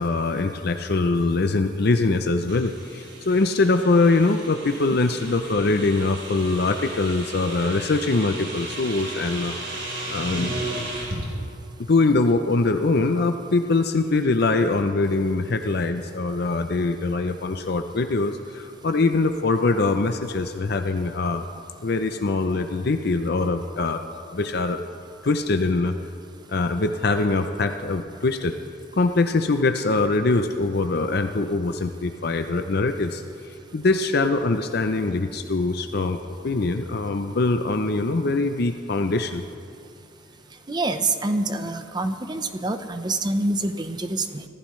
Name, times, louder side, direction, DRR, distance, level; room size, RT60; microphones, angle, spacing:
voice 1, 0.0-9.5 10.0-10.5 11.9-21.4 21.8-24.0 24.3-24.9 25.2-25.9 26.5-28.5 28.9-39.4, left 3 dB, 55° left, 7 dB, 0.6 m, -23 dB
sound 1, 2.5-11.2, right 2 dB, 70° right, 4.1 m, -35 dB
voice 2, 40.7-44.5, right 2 dB, 20° right, 8 dB, 0.8 m, -26 dB
24.5 x 15.0 x 3.2 m, 2.5 s
head